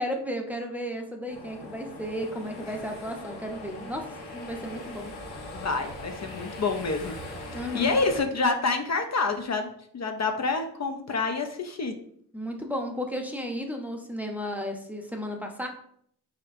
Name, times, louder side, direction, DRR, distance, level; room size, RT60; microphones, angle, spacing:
voice 1, 0.0-5.1 7.5-8.0 12.3-15.7, equal, 5° right, 2 dB, 0.6 m, -34 dB
sound 1, 1.3-8.2, left 1 dB, 90° left, 1.1 m, -41 dB
voice 2, 5.5-7.1 7.7-9.7 9.9-11.9, left 3 dB, 45° left, 5 dB, 0.5 m, -27 dB
4.1 x 4.1 x 2.5 m, 0.65 s
cardioid pair, 75°, 39 cm